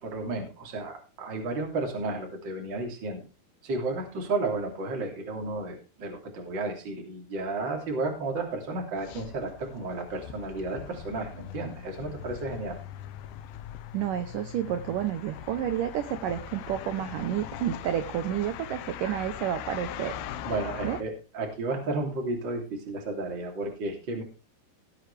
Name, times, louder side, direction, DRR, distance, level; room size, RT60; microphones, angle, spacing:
voice 1, 0.0-3.3 3.6-12.8 19.0-19.2 20.5-24.2, right 2 dB, 30° right, 2 dB, 3.1 m, -33 dB
sound 1, 9.0-21.0, left 10 dB, 80° left, 2.9 m, -41 dB
voice 2, 13.9-20.2 20.8-21.0, right 10 dB, 80° right, 9 dB, 1.9 m, -30 dB
18.0 x 8.7 x 3.4 m, 0.32 s
omnidirectional pair, 4.9 m